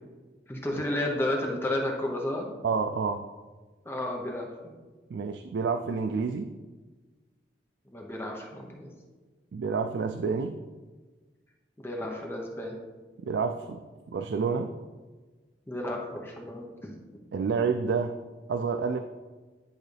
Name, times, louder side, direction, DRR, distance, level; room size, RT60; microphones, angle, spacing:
voice 1, 0.5-2.5 3.8-4.7 7.9-8.9 11.8-12.8 15.7-17.0, left 1 dB, 15° left, 0 dB, 0.8 m, -32 dB
voice 2, 2.6-3.3 5.1-6.5 9.5-10.6 13.2-13.8 14.1-14.7 17.3-18.1 18.5-19.0, right 5 dB, 75° right, 7 dB, 0.4 m, -29 dB
10.5 x 3.8 x 3.3 m, 1.3 s
head